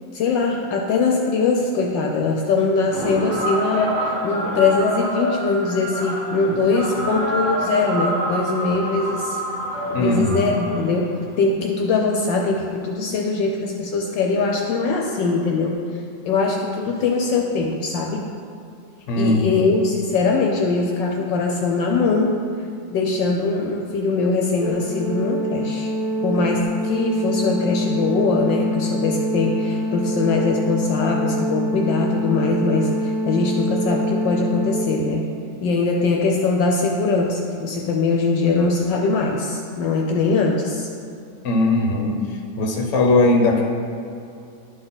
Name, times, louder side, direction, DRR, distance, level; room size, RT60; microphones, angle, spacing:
voice 1, 0.1-9.4 10.0-15.8 16.2-18.3 19.2-22.3 22.9-25.9 26.2-35.2 35.6-40.9, left 4 dB, 70° left, 0 dB, 1.2 m, -22 dB
sound 1, 2.9-11.4, equal, 85° right, 2.8 m, -26 dB
voice 2, 9.9-10.5 19.1-19.8 41.4-42.2 42.6-43.6, left 2 dB, 50° left, 1 dB, 1.0 m, -19 dB
Organ, 24.6-35.5, equal, 65° right, 1.5 m, -25 dB
11.5 x 3.9 x 4.0 m, 2.5 s
omnidirectional pair, 2.2 m